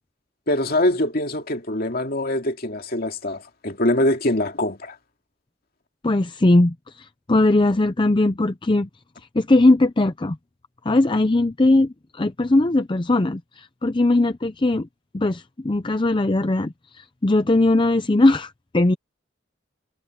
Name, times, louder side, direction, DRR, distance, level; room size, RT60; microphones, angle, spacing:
voice 1, 0.5-5.0, left 1 dB, 50° left, 2.5 m, -23 dB
voice 2, 6.0-8.9 9.3-10.4 10.9-14.9 15.1-19.0, left 2 dB, 25° left, 0.6 m, -19 dB
head